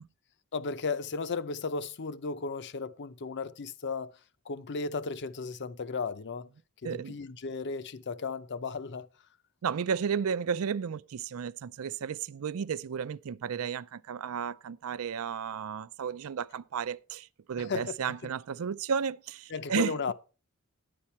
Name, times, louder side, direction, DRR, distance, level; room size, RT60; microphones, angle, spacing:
voice 1, 0.5-4.1 4.5-6.5 6.8-9.1 17.6-17.9 19.5-20.1, left 4 dB, 55° left, 0.6 m, -35 dB
voice 2, 6.8-7.2 9.6-19.9, right 7 dB, 70° right, 0.4 m, -33 dB
10.5 x 8.6 x 4.3 m
head